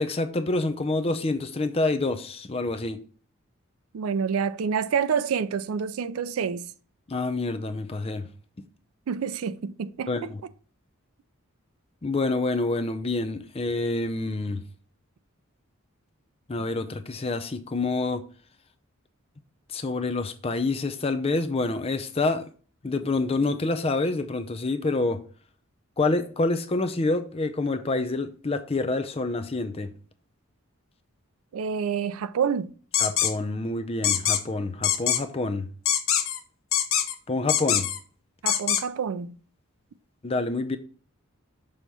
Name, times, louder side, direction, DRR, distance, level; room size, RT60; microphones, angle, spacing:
voice 1, 0.0-3.0 7.1-8.3 10.1-10.4 12.0-14.6 16.5-18.2 19.7-22.4 22.8-25.2 26.0-29.9 33.0-35.7 37.3-37.9 40.2-40.8, left 2 dB, 30° left, 0.5 m, -27 dB
voice 2, 3.9-6.7 9.1-10.3 31.5-32.7 38.4-39.4, right 6 dB, 80° right, 0.4 m, -28 dB
sound 1, 32.9-33.3 34.0-34.4 34.8-35.2 35.9-36.4 36.7-37.1 37.5-38.0 38.5-38.8, left 10 dB, 70° left, 0.8 m, -23 dB
6.3 x 3.0 x 5.2 m
head